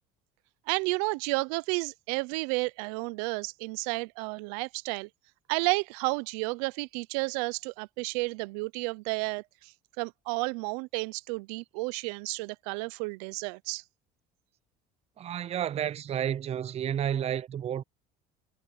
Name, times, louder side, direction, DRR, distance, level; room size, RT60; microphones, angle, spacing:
voice 1, 0.7-5.1 5.5-13.8, right 27 dB, 90° right, 0.5 m, -32 dB
voice 2, 15.2-17.8, right 9 dB, 35° right, 0.4 m, -31 dB
supercardioid pair, 100°, 19 cm